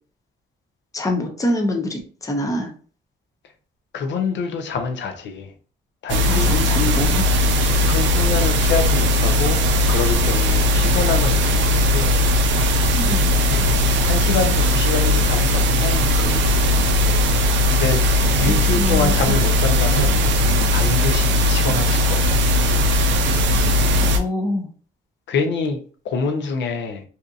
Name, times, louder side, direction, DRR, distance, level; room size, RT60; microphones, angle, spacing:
voice 1, 0.9-2.7 6.2-7.3 13.0-13.3 18.4-19.4 24.0-24.7, left 1 dB, 15° left, 2 dB, 0.6 m, -25 dB
voice 2, 3.9-5.5 6.0-6.5 7.6-9.6 9.9-12.1 13.5-13.7 14.0-16.8 17.6-20.2 20.7-22.3 25.3-25.8 26.0-27.0, left 5 dB, 65° left, 5 dB, 0.6 m, -26 dB
sound 1, 6.1-24.2, left 1 dB, 70° right, 0.4 m, -18 dB
sound 2, 11.0-11.4 11.8-17.1 17.7-18.4 18.8-18.9 19.1-23.1 23.5-24.1, equal, 85° left, 1.0 m, -35 dB
2.7 x 2.5 x 2.4 m, 0.40 s
cardioid pair, 90°, 20 cm